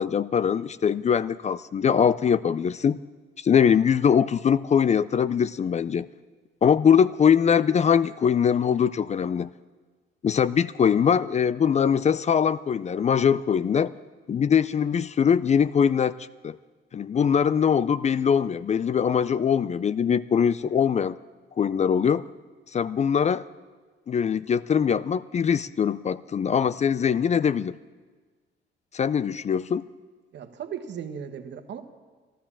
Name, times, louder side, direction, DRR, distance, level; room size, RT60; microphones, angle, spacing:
voice 1, 0.0-3.0 3.4-6.1 6.6-9.5 10.2-13.9 14.3-16.1 16.4-16.6 16.9-21.2 21.6-22.3 22.7-23.4 24.1-27.8 28.9-29.9, left 7 dB, 35° left, 17 dB, 0.4 m, -22 dB
voice 2, 30.3-31.8, right 8 dB, 65° right, 8 dB, 1.2 m, -36 dB
12.5 x 12.5 x 7.3 m, 1.4 s
cardioid pair, 90°, 20 cm